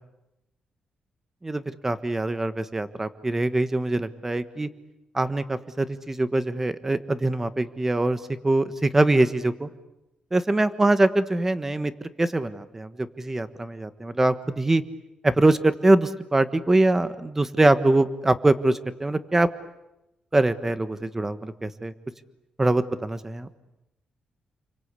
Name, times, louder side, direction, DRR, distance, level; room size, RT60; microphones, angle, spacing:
voice 1, 1.4-4.7 5.1-9.7 10.3-14.8 15.2-19.5 20.3-21.9 22.6-23.5, right 2 dB, 15° right, 11 dB, 1.4 m, -23 dB
30.0 x 24.0 x 8.3 m, 0.93 s
cardioid pair, 125°, 2 cm